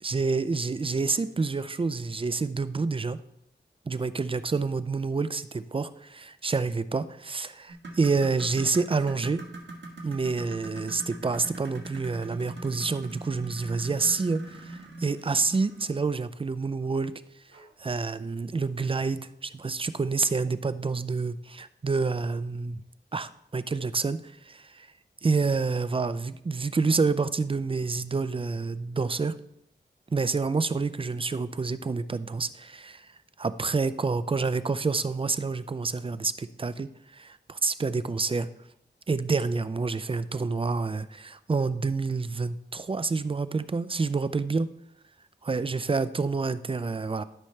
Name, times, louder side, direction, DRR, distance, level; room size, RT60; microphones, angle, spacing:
voice 1, 0.0-3.2 3.9-9.4 10.0-17.1 17.8-22.8 23.1-24.9 25.2-29.3 30.1-33.1 33.4-38.5 39.1-44.7 45.4-47.2, right 4 dB, 30° right, 14 dB, 0.4 m, -28 dB
sound 1, 7.7-16.1 17.5-17.6 18.1-18.2 18.9-19.0, right 2 dB, 80° right, 1.4 m, -42 dB
12.0 x 5.6 x 3.2 m, 0.79 s
wide cardioid pair, 85°, 18 cm